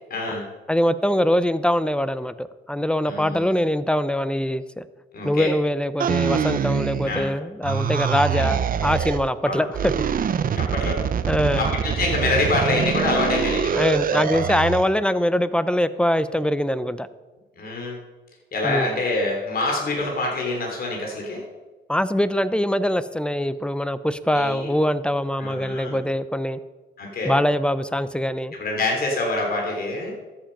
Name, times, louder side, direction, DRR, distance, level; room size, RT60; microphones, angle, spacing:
voice 1, 0.1-0.5 3.0-3.5 5.1-5.5 7.1-7.3 8.3-8.5 9.5-9.6 10.5-11.0 11.6-14.6 17.6-18.0 18.5-21.4 24.3-24.7 25.4-26.0 27.0-27.4 28.5-30.1, left 2 dB, 50° left, 0 dB, 3.4 m, -26 dB
voice 2, 0.7-4.9 5.2-9.9 11.3-11.7 13.7-17.1 18.6-18.9 21.9-26.6 27.2-28.5, equal, 5° left, 14 dB, 0.6 m, -23 dB
sound 1, 6.0-7.3 7.6-9.3 9.7-14.9, right 8 dB, 45° right, 0.7 m, -24 dB
13.5 x 7.7 x 5.3 m, 1.2 s
cardioid pair, 90°, 20 cm